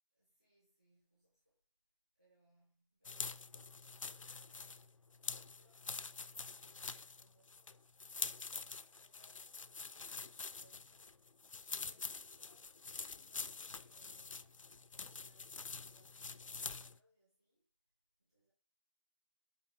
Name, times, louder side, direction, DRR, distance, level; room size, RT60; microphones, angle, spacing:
voice 1, 0.1-1.6 2.1-7.9 8.2-14.5 14.7-17.7 18.2-18.5, equal, 15° right, 1.0 m, -75 dB
sound 1, 3.0-17.0, left 4 dB, 80° left, 0.4 m, -46 dB
5.7 x 4.5 x 4.5 m
figure-of-eight pair, 175°, 17 cm